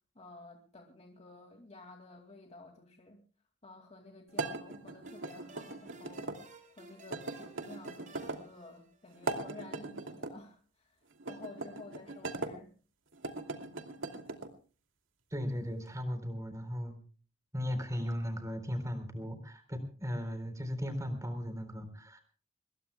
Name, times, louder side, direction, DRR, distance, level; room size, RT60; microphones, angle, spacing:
voice 1, 0.1-3.2 3.6-11.0 11.3-12.7, left 2 dB, 30° left, 2 dB, 2.4 m, -52 dB
sound 1, 4.3-6.4 7.1-8.4 9.1-10.3 11.2-12.5 13.1-14.5, right 2 dB, 70° right, 2.6 m, -39 dB
sound 2, 5.1-9.4, right 2 dB, 40° right, 5.5 m, -56 dB
voice 2, 15.3-16.9 17.5-22.2, equal, 15° right, 8 dB, 3.9 m, -37 dB
26.0 x 21.5 x 2.3 m, 0.40 s
head